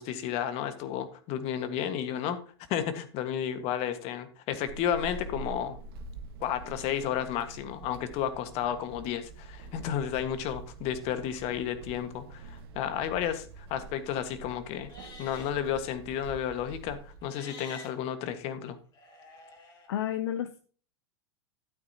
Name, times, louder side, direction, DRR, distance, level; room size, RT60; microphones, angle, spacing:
voice 1, 0.0-2.4 2.7-5.8 6.4-18.8, left 9 dB, 50° left, 10 dB, 1.6 m, -32 dB
Walk footsteps / Squeak, 4.7-17.3, right 3 dB, 65° right, 1.5 m, -46 dB
Livestock farm animals working animals, 14.8-15.5 17.2-17.9 18.9-19.9, left 2 dB, 30° left, 3.2 m, -48 dB
voice 2, 19.9-20.6, left 11 dB, 75° left, 11 dB, 0.7 m, -31 dB
12.5 x 9.0 x 2.9 m, 0.39 s
hypercardioid pair, 105°, 13 cm